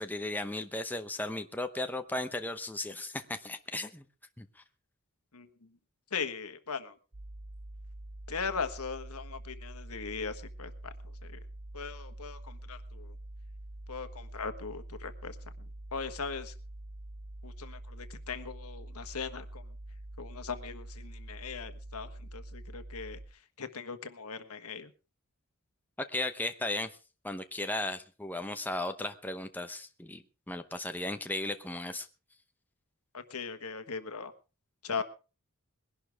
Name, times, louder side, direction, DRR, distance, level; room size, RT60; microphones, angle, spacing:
voice 1, 0.0-4.0 4.4-4.5 26.0-27.0 27.2-32.1, left 2 dB, 10° left, 7 dB, 0.8 m, -36 dB
voice 2, 6.1-6.9 8.3-10.7 11.3-11.4 11.7-13.1 13.9-15.3 15.9-16.5 17.4-19.6 20.2-23.2 23.6-24.9 33.1-34.3 34.8-35.0, left 5 dB, 90° left, 10 dB, 1.5 m, -39 dB
sound 1, 7.1-23.3, right 1 dB, 55° right, 2.0 m, -45 dB
21.5 x 11.5 x 3.5 m, 0.33 s
head